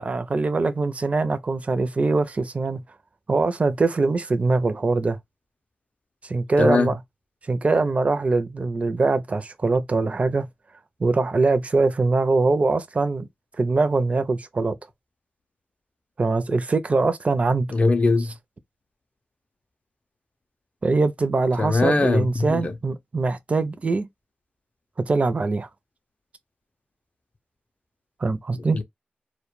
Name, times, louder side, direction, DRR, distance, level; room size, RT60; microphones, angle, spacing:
voice 1, 0.0-2.8 3.3-5.2 6.2-7.0 7.5-10.5 11.0-13.3 13.6-14.8 16.2-17.8 20.8-24.1 25.0-25.7 28.2-28.8, right 3 dB, 40° right, 0.4 m, -22 dB
voice 2, 6.6-6.9 17.7-18.3 21.6-22.7 28.7-28.8, left 3 dB, 40° left, 0.4 m, -21 dB
2.1 x 2.1 x 3.0 m
cardioid pair, 70°, 3 cm